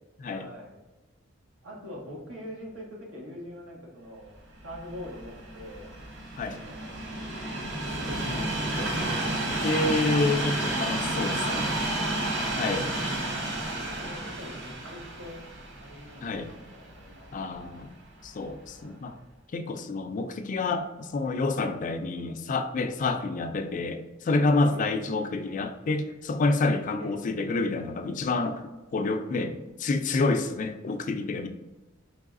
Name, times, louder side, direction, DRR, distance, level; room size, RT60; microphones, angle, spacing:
voice 1, 0.3-0.8 1.6-4.4 4.6-5.9 6.5-7.1 8.0-9.6 10.0-10.4 11.3-11.8 12.7-13.4 13.7-15.4 15.8-17.3 18.7-19.3 21.6-21.8 24.6-24.8 27.0-27.2, equal, 90° right, -3 dB, 1.4 m, -44 dB
Train, 4.6-17.8 18.5-18.6, right 1 dB, 60° right, 0.8 m, -31 dB
voice 2, 9.6-11.7 12.5-12.9 16.2-16.5 17.3-17.9 18.2-19.2 19.5-28.6 28.9-31.5, left 3 dB, 40° left, 8 dB, 0.3 m, -28 dB
4.7 x 3.3 x 2.5 m, 1.1 s
head